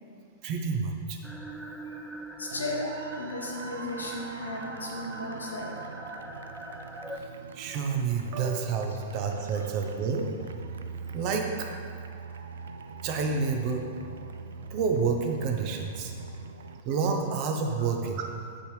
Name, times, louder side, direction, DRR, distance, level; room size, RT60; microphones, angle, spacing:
voice 1, 0.4-1.2 7.2-7.3 7.5-10.3 10.8-11.7 13.0-13.9 14.7-16.1 16.8-18.3, right 5 dB, 40° right, 3 dB, 0.8 m, -29 dB
sound 1, 1.2-7.2, right 1 dB, ahead, 0.5 m, -43 dB
voice 2, 2.4-5.8 8.7-9.0, left 2 dB, 75° left, -2 dB, 1.2 m, -35 dB
sound 2, 2.5-16.8, right 5 dB, 65° right, 0.4 m, -42 dB
8.0 x 5.9 x 3.3 m, 2.3 s
figure-of-eight pair, 100°, 0 cm